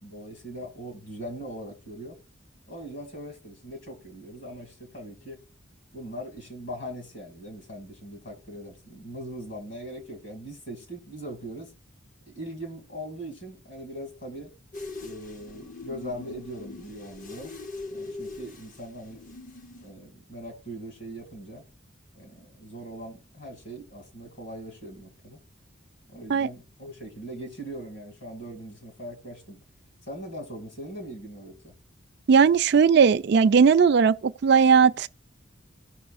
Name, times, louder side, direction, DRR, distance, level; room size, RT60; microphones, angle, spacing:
voice 1, 0.0-2.2 2.7-5.4 5.9-11.7 12.3-14.5 15.0-17.5 17.9-19.2 19.8-21.7 22.1-25.4 26.1-29.6 30.1-31.7, right 1 dB, 60° left, 2.3 m, -40 dB
sound 1, 14.7-19.9, left 3 dB, 40° left, 0.7 m, -41 dB
voice 2, 32.3-35.1, right 6 dB, 55° right, 0.4 m, -18 dB
16.0 x 5.5 x 2.5 m
head